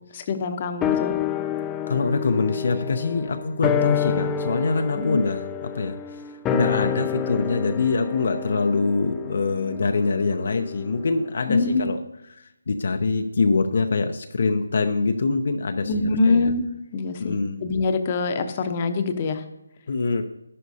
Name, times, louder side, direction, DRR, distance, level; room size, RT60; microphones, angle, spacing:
voice 1, 0.1-1.1 5.0-5.2 11.5-11.9 15.9-16.7 16.9-19.4, left 3 dB, 25° left, 7 dB, 0.9 m, -24 dB
sound 1, 0.8-11.4 11.7-11.8, left 8 dB, 10° left, 0.4 m, -29 dB
voice 2, 1.9-6.2 6.5-12.0 12.3-16.5 17.2-17.6 19.9-20.2, left 4 dB, 55° left, 6 dB, 0.6 m, -24 dB
12.0 x 11.0 x 2.8 m, 0.88 s
figure-of-eight pair, 165°, 0 cm